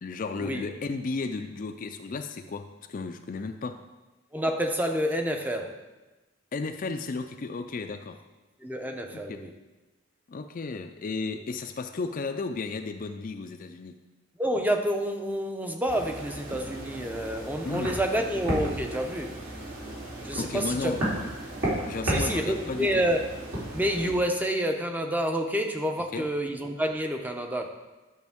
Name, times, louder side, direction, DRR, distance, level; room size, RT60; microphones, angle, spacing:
voice 1, 0.0-3.8 6.5-8.2 9.1-9.4 10.3-14.0 17.6-18.0 20.3-21.0 21.9-23.0 26.1-26.3, left 3 dB, 40° left, 7 dB, 0.4 m, -34 dB
voice 2, 4.3-5.8 8.6-9.5 14.4-19.4 20.2-21.0 22.0-23.3 23.7-27.7, equal, 10° right, 4 dB, 0.6 m, -28 dB
sound 1, 15.9-24.1, right 1 dB, 75° right, 3.1 m, -34 dB
11.5 x 6.2 x 3.6 m, 1.1 s
head